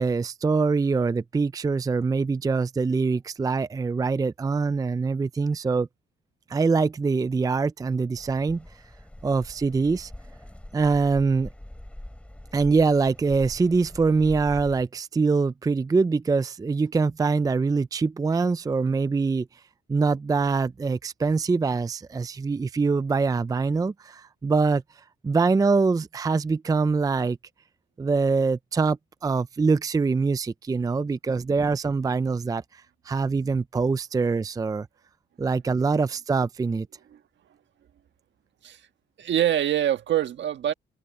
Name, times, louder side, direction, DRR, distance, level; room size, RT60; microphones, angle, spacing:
voice 1, 0.0-5.9 6.5-8.6 9.2-10.1 10.7-11.5 12.5-19.5 19.9-24.8 25.2-27.4 28.0-34.9 35.4-36.9, right 4 dB, 20° right, 0.5 m, -24 dB
sound 1, 8.1-14.8, left 1 dB, 5° left, 5.1 m, -43 dB
voice 2, 39.2-40.7, right 11 dB, 65° right, 1.5 m, -24 dB
cardioid pair, 90°, 20 cm